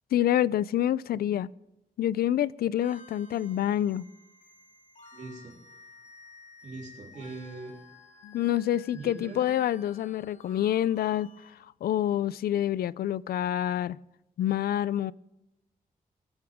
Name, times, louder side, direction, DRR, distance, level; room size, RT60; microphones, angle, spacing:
voice 1, 0.1-1.5 2.0-4.1 8.2-11.3 11.8-14.0 14.4-15.1, left 11 dB, 85° left, 0.4 m, -27 dB
sound 1, 2.8-11.5, left 3 dB, 55° left, 5.3 m, -53 dB
voice 2, 5.1-5.6 6.6-7.7 8.9-9.5, right 3 dB, 55° right, 3.5 m, -41 dB
23.0 x 11.0 x 3.6 m
wide cardioid pair, 180°, 15 cm